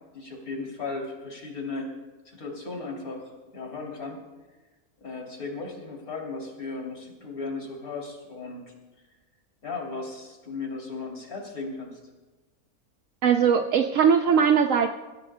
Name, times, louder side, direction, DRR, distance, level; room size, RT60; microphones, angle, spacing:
voice 1, 0.1-1.9 2.2-4.2 5.0-8.6 9.6-12.0, left 3 dB, 70° left, -1 dB, 3.4 m, -36 dB
voice 2, 13.2-14.9, right 7 dB, 65° right, 6 dB, 0.9 m, -20 dB
29.5 x 15.5 x 2.2 m, 1.2 s
omnidirectional pair, 1.6 m